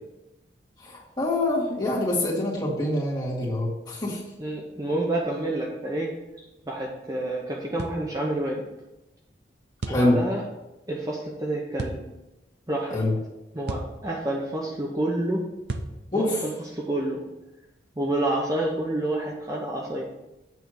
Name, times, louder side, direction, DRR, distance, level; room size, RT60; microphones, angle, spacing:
voice 1, 0.8-4.2 9.9-10.2 12.9-13.1 16.1-16.4, left 1 dB, 25° left, -6 dB, 2.0 m, -25 dB
voice 2, 4.4-6.1 6.7-8.6 9.9-10.4 10.9-12.0 12.7-13.0 13.5-15.4 16.1-17.2 18.0-20.0, right 1 dB, 20° right, -2 dB, 0.8 m, -28 dB
sound 1, 7.8-8.0 9.8-10.1 11.8-12.0 13.7-14.0 15.7-16.0, right 2 dB, 70° right, 0.6 m, -32 dB
8.2 x 3.4 x 6.3 m, 0.97 s
head